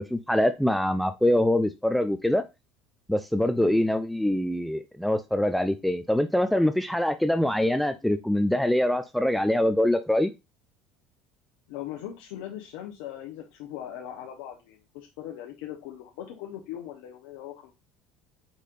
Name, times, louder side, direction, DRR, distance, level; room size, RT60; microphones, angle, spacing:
voice 1, 0.0-2.4 3.1-10.3, left 1 dB, ahead, 0.3 m, -24 dB
voice 2, 11.7-17.7, left 11 dB, 80° left, 0.8 m, -40 dB
4.9 x 4.2 x 2.5 m
supercardioid pair, 100°, 3 cm